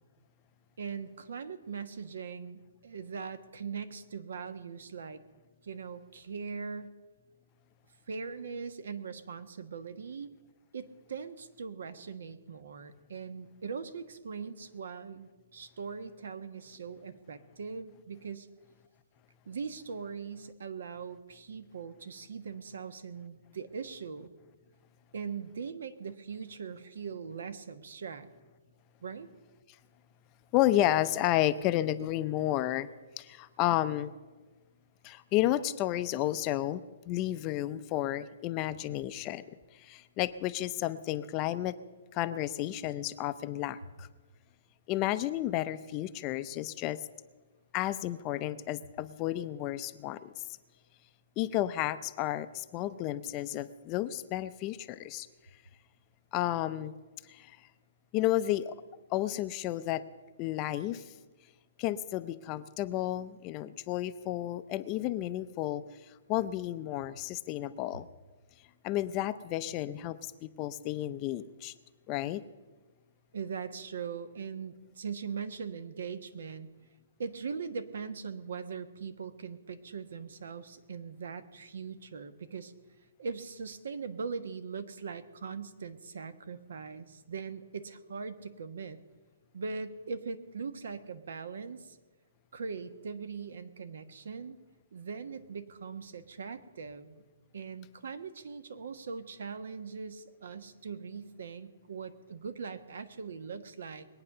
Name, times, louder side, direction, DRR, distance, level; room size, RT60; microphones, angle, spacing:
voice 1, 0.8-5.2 5.6-6.9 8.1-10.3 10.7-18.5 19.5-24.3 25.1-28.3 29.0-29.3 73.3-76.7 77.2-82.7 83.2-89.0 89.5-92.0 92.5-94.6 94.9-97.2 97.5-104.1, right 5 dB, 75° right, 11 dB, 1.3 m, -41 dB
voice 2, 30.5-32.9 33.2-34.1 35.0-36.8 37.1-39.4 39.7-41.7 42.1-44.1 44.9-47.0 47.7-50.3 51.4-55.3 56.3-56.9 57.3-57.6 58.1-58.7 59.1-60.0 60.4-61.1 61.8-65.8 66.3-68.1 68.8-70.3 70.6-71.7 72.1-72.4, left 14 dB, 25° left, 12 dB, 0.5 m, -32 dB
21.5 x 8.9 x 6.7 m, 1.3 s
hypercardioid pair, 160°, 0 cm